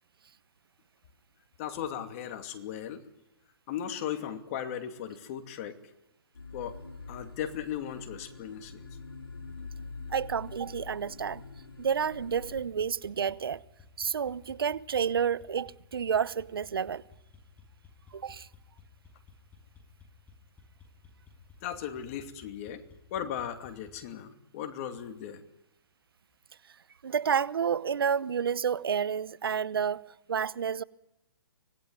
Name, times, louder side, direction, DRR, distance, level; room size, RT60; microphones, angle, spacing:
voice 1, 1.6-3.0 3.7-5.8 6.5-6.8 7.1-8.8 21.6-22.8 23.1-25.4, left 9 dB, 40° left, 2.5 m, -37 dB
sound 1, 6.3-12.6, left 4 dB, 85° left, 5.3 m, -45 dB
voice 2, 10.1-11.4 11.8-13.6 14.0-17.0 18.1-18.5 27.0-30.8, right 7 dB, 75° right, 0.9 m, -30 dB
sound 2, 12.4-24.1, left 4 dB, 10° left, 6.2 m, -56 dB
25.0 x 18.5 x 9.6 m
hypercardioid pair, 140°, 12 cm